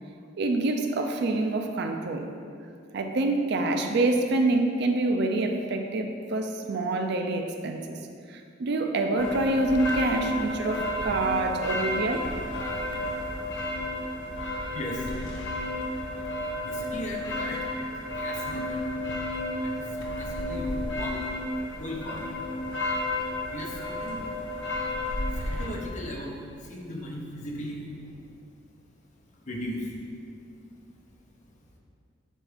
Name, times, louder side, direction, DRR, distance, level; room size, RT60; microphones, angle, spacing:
voice 1, 0.4-2.3 2.9-8.0 8.3-12.3, right 2 dB, 60° right, 4 dB, 0.4 m, -26 dB
sound 1, 9.2-25.7, left 1 dB, 65° left, 0.8 m, -32 dB
voice 2, 14.7-15.3 16.6-18.9 19.6-21.2 21.8-22.3 23.4-24.3 25.3-28.1 29.5-29.9, left 1 dB, 40° left, -1 dB, 0.8 m, -37 dB
7.5 x 2.5 x 4.9 m, 2.3 s
head